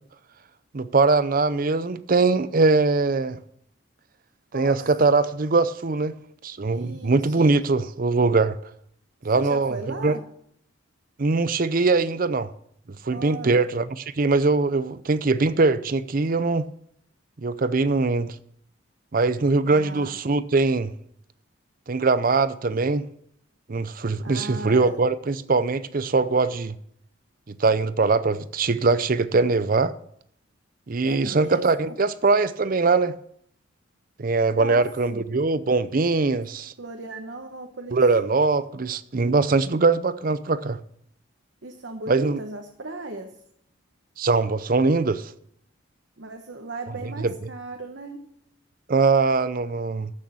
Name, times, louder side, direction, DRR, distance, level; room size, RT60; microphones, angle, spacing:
voice 1, 0.7-3.4 4.5-6.1 6.4-8.6 9.2-9.8 10.0-10.2 11.2-12.5 13.0-16.7 17.4-18.4 19.1-20.9 21.9-23.1 23.7-26.7 27.5-29.9 30.9-33.1 34.2-36.7 37.9-40.8 42.1-42.4 44.2-45.3 47.2-47.3 48.9-50.1, right 3 dB, 45° right, 0.5 m, -22 dB
voice 2, 4.5-4.9 6.7-7.5 9.3-10.2 13.1-13.6 19.7-20.1 24.2-25.0 31.0-32.0 34.6-35.2 36.8-38.0 41.6-43.3 46.2-48.2, right 2 dB, 60° right, 1.1 m, -37 dB
14.0 x 6.5 x 7.0 m
head